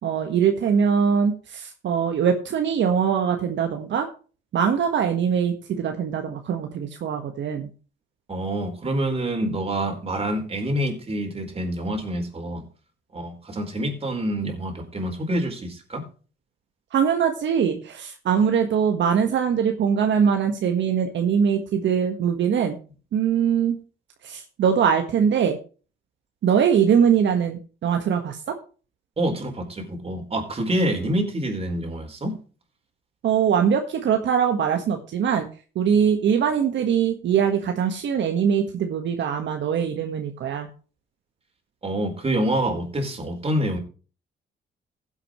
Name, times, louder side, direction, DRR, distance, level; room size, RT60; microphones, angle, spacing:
voice 1, 0.0-4.1 4.5-7.7 16.9-22.8 23.1-23.8 24.2-25.6 26.4-28.6 33.2-35.4 35.7-40.7, right 7 dB, 65° right, 5 dB, 1.5 m, -22 dB
voice 2, 8.3-12.6 13.1-16.0 29.2-32.3 41.8-43.8, right 1 dB, 30° right, 3 dB, 4.4 m, -26 dB
16.0 x 8.2 x 3.1 m, 0.36 s
cardioid pair, 90°, 20 cm